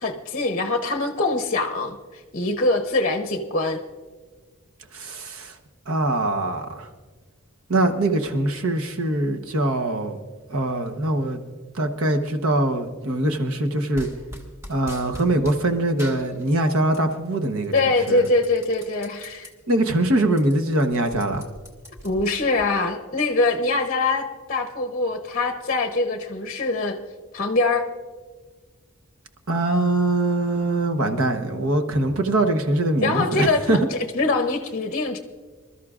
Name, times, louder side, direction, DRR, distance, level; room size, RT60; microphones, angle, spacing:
voice 1, 0.0-3.8 17.7-19.5 22.0-27.0 27.3-27.8 33.0-35.2, left 2 dB, 40° left, 6 dB, 0.8 m, -23 dB
voice 2, 4.9-5.5 5.9-6.9 7.7-10.2 10.5-11.4 11.7-14.1 14.7-17.7 18.1-18.2 19.7-21.4 29.5-33.8, right 1 dB, 75° right, 6 dB, 1.0 m, -23 dB
sound 1, 13.9-15.6 16.0-17.1 17.4-19.5 19.9-20.0 20.3-22.7, left 1 dB, 15° right, 1.5 m, -41 dB
26.0 x 13.0 x 2.4 m, 1.4 s
head